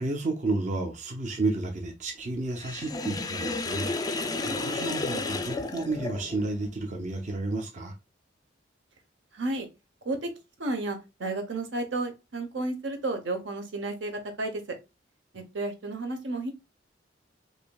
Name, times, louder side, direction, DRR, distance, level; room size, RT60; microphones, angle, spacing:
voice 1, 0.0-7.9, right 2 dB, 40° right, 0.6 m, -32 dB
Sink (filling or washing), 2.6-6.5, left 3 dB, 20° left, 0.3 m, -32 dB
voice 2, 9.3-9.7 10.0-10.3 10.6-14.8 15.3-16.5, right 2 dB, 75° right, 0.9 m, -32 dB
4.9 x 2.6 x 2.2 m
head